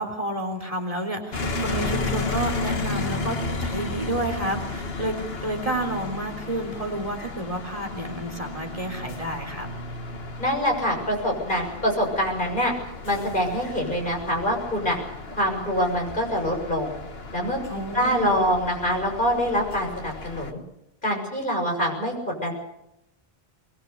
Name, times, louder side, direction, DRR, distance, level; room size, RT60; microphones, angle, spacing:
voice 1, 0.0-5.2 5.4-9.7 17.7-18.4, right 1 dB, 35° right, 3 dB, 3.7 m, -30 dB
sound 1, 1.3-20.5, left 3 dB, 70° left, 1.8 m, -33 dB
voice 2, 10.4-12.7 13.0-15.0 15.3-16.9 17.3-20.6 21.0-22.5, equal, 50° left, 1 dB, 6.9 m, -25 dB
22.5 x 22.0 x 6.9 m, 0.84 s
omnidirectional pair, 1.1 m